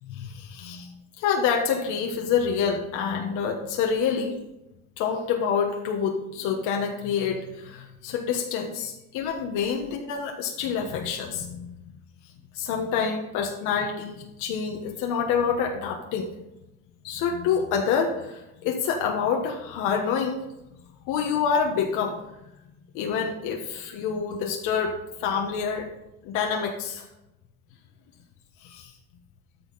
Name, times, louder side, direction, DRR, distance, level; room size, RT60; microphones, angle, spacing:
voice 1, 0.1-4.4 5.0-11.8 12.5-16.3 17.0-20.4 21.1-22.2 22.9-24.9 25.2-25.9 26.2-27.1 28.6-28.9, left 6 dB, 80° left, 1 dB, 1.4 m, -27 dB
13.0 x 5.7 x 4.1 m, 0.94 s
cardioid pair, 160°, 30 cm